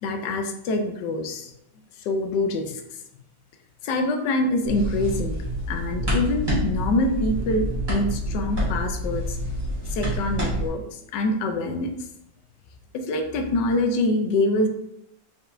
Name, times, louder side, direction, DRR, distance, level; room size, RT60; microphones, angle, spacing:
voice 1, 0.0-1.5 2.0-2.8 3.8-5.4 5.7-9.4 9.9-11.9 12.9-14.7, left 2 dB, 75° left, 5 dB, 1.2 m, -25 dB
sound 1, 4.6-10.7, equal, 15° right, 1.5 m, -27 dB
4.5 x 4.4 x 2.5 m, 0.83 s
omnidirectional pair, 2.0 m